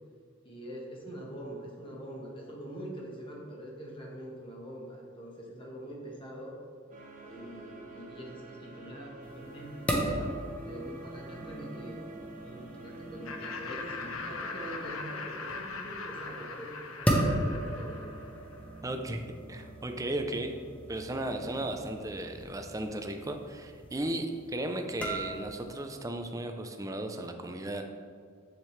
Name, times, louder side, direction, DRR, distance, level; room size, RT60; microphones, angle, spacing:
voice 1, 0.4-6.5 7.2-12.0 12.4-16.7 17.0-18.0, equal, 25° left, -2 dB, 1.4 m, -44 dB
sound 1, 6.9-14.9, right 2 dB, 40° right, 1.1 m, -47 dB
sound 2, 9.2-26.0, right 1 dB, 5° left, 0.9 m, -37 dB
Laughter, 13.3-18.5, left 4 dB, 85° left, 0.7 m, -40 dB
voice 2, 18.8-20.5 20.9-27.8, right 1 dB, 15° right, 5 dB, 0.5 m, -35 dB
7.5 x 7.3 x 3.2 m, 2.1 s
head